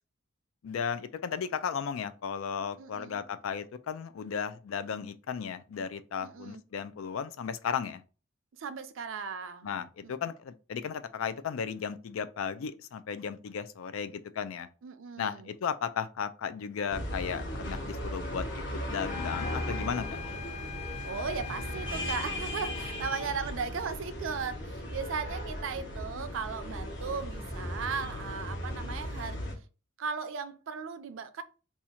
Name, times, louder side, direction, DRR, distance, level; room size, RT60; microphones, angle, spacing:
voice 1, 0.6-8.0 9.6-14.7 15.2-20.2, left 7 dB, 90° left, 0.4 m, -35 dB
voice 2, 2.8-3.2 6.2-6.6 8.6-9.7 10.0-10.1 14.8-15.5 21.0-29.4 30.0-31.4, right 5 dB, 75° right, 0.4 m, -37 dB
sound 1, 16.9-29.5, equal, 65° left, 1.1 m, -37 dB
sound 2, 19.1-23.3, left 7 dB, 35° left, 0.6 m, -42 dB
2.7 x 2.4 x 4.2 m
head